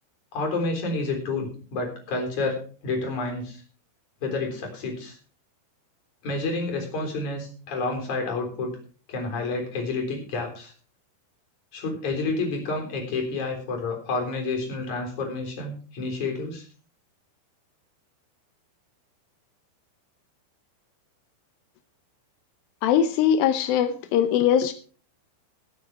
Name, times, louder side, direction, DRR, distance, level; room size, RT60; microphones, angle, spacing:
voice 1, 0.3-3.6 4.2-5.2 6.2-8.8 9.1-10.7 11.7-16.7, left 3 dB, 45° left, 2 dB, 4.8 m, -29 dB
voice 2, 22.8-24.7, left 9 dB, 80° left, 9 dB, 2.2 m, -21 dB
18.0 x 8.1 x 4.6 m, 0.40 s
omnidirectional pair, 5.2 m